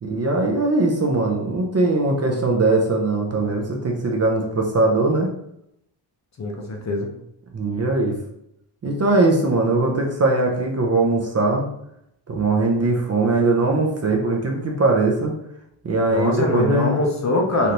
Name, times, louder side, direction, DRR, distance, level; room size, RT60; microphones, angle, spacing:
voice 1, 0.0-5.3 7.5-8.2 8.8-11.6 12.3-15.3 15.8-17.0 17.6-17.7, right 2 dB, 35° right, 0 dB, 0.5 m, -20 dB
voice 2, 6.4-7.1 16.1-17.7, left 2 dB, 35° left, 1 dB, 0.5 m, -23 dB
3.3 x 2.6 x 2.8 m, 0.76 s
wide cardioid pair, 130°, 49 cm